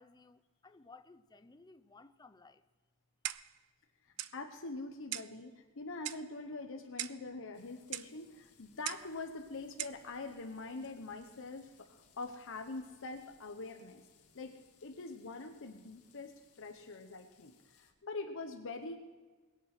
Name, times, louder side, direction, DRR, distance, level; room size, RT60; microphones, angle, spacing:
voice 1, 0.0-2.6 4.1-4.3, left 3 dB, 20° left, 0.6 m, -58 dB
Clock, 3.2-3.6 4.2-4.4 5.1-5.4 6.0-6.3 7.0-7.3 7.9-8.1 8.8-9.1 9.8-10.0, right 14 dB, 85° right, 0.5 m, -40 dB
voice 2, 4.0-14.0 14.3-14.5 14.8-19.1, left 3 dB, 60° left, 1.0 m, -44 dB
sound 1, 7.5-17.9, left 6 dB, 85° left, 1.9 m, -67 dB
22.5 x 8.3 x 6.0 m
head